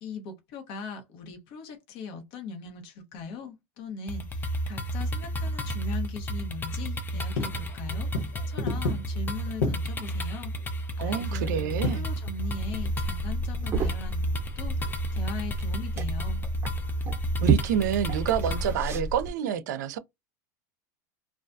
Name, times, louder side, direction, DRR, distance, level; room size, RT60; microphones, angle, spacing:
voice 1, 0.0-16.5, left 4 dB, 60° left, 1.0 m, -40 dB
sound 1, 4.1-18.7, right 1 dB, 20° left, 0.5 m, -31 dB
sound 2, 7.1-13.1, left 3 dB, 80° left, 1.0 m, -35 dB
voice 2, 11.0-12.0 17.4-20.0, right 9 dB, 80° right, 0.4 m, -28 dB
Liquid, 12.5-19.3, right 3 dB, 25° right, 0.8 m, -32 dB
2.3 x 2.2 x 2.5 m
hypercardioid pair, 105°, 10 cm